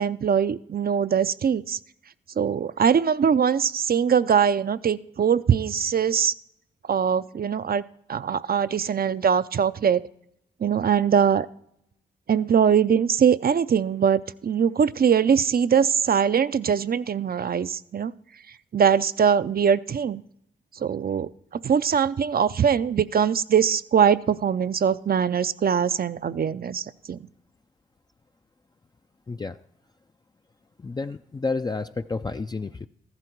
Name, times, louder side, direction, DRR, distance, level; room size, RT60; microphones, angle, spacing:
voice 1, 0.0-1.8 2.4-6.3 6.9-7.8 8.1-10.0 10.6-11.5 12.3-18.1 18.7-20.2 20.8-21.3 21.6-27.2, right 7 dB, 50° right, 14 dB, 0.5 m, -22 dB
voice 2, 29.3-29.6 30.8-32.9, left 3 dB, 20° left, 7 dB, 0.4 m, -30 dB
14.0 x 11.5 x 4.6 m, 0.77 s
cardioid pair, 55°, 20 cm